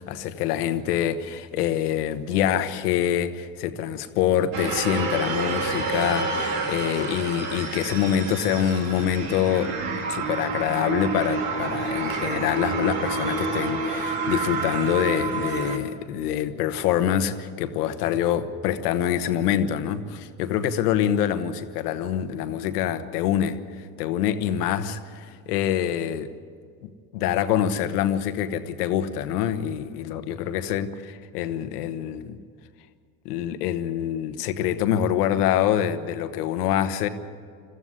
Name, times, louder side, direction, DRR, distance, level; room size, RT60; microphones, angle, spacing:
voice 1, 0.0-26.3 26.8-32.4 33.2-37.1, left 10 dB, 75° left, 9 dB, 1.3 m, -25 dB
sound 1, 4.5-15.8, right 3 dB, 65° right, 3.0 m, -28 dB
22.5 x 14.0 x 9.6 m, 2.1 s
hypercardioid pair, 70°, 46 cm